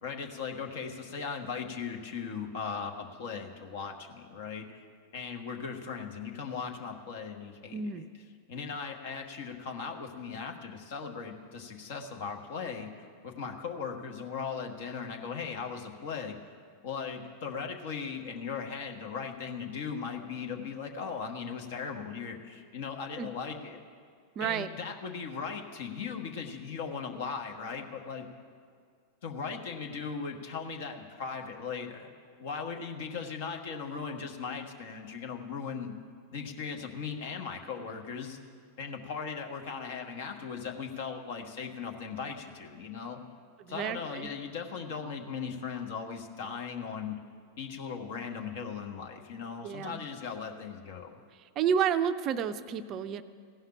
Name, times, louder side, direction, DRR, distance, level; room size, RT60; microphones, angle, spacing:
voice 1, 0.0-4.8 5.1-8.1 8.5-12.9 13.2-16.4 16.8-23.8 24.4-28.3 29.2-32.1 32.4-35.9 36.3-38.4 38.8-43.2 43.7-47.2 47.6-51.2, left 6 dB, 55° left, 3 dB, 1.2 m, -38 dB
voice 2, 7.7-8.0 23.2-23.3 24.4-24.7 43.6-44.3 49.6-50.0 51.6-53.2, right 8 dB, 35° right, 12 dB, 0.5 m, -30 dB
16.0 x 5.7 x 10.0 m, 2.1 s
figure-of-eight pair, 90°, 0 cm